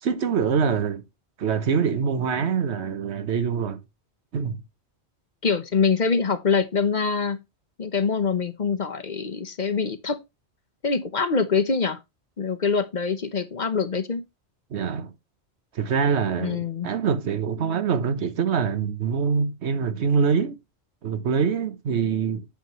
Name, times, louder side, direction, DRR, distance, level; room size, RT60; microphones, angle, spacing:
voice 1, 0.0-1.0 1.4-3.8 4.3-4.6 14.7-15.1 15.7-20.6 21.0-22.5, right 6 dB, 75° right, 1.2 m, -24 dB
voice 2, 5.4-7.4 7.8-10.2 10.8-12.0 12.4-14.2 16.4-16.9, left 5 dB, 45° left, 0.9 m, -24 dB
8.3 x 7.8 x 3.0 m
omnidirectional pair, 1.1 m